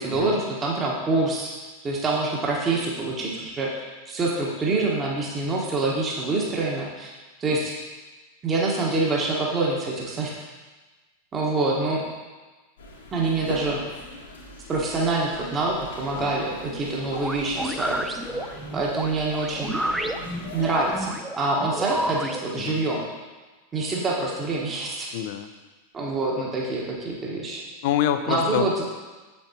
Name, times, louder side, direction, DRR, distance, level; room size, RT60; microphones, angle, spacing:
voice 1, 0.0-1.5 1.8-3.7 4.1-7.1 7.4-7.7 8.4-10.3 11.3-12.0 13.1-13.8 14.7-18.1 18.7-19.8 20.5-23.0 23.7-25.1 25.9-27.6 28.3-28.8, right 3 dB, 20° right, -2 dB, 1.2 m, -26 dB
sound 1, 12.8-21.0, left 2 dB, 65° left, 1.3 m, -40 dB
sound 2, 17.1-22.4, right 1 dB, 5° right, 0.4 m, -31 dB
voice 2, 25.1-25.5 27.8-28.8, left 10 dB, 50° left, 9 dB, 0.5 m, -26 dB
7.6 x 6.9 x 2.8 m, 1.3 s
figure-of-eight pair, 90°, 0 cm